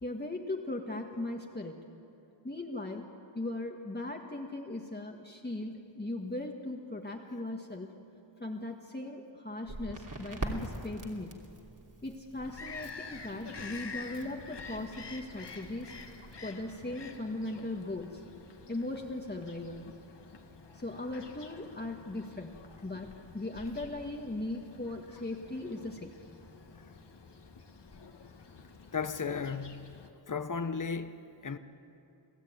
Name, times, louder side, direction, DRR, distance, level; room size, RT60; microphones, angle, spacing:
voice 1, 0.0-1.8 2.4-3.0 3.3-7.9 8.4-11.4 12.0-15.9 16.4-18.2 18.7-19.9 20.7-22.6 22.8-26.1, left 2 dB, 20° left, 1.6 m, -38 dB
Crackle, 9.6-16.3, right 2 dB, 40° right, 3.0 m, -44 dB
Bird vocalization bird call bird song, 12.4-30.1, left 4 dB, 60° left, 1.9 m, -49 dB
voice 2, 28.9-30.0 30.3-31.6, left 5 dB, 40° left, 1.1 m, -35 dB
29.0 x 18.0 x 9.4 m
wide cardioid pair, 105°, 46 cm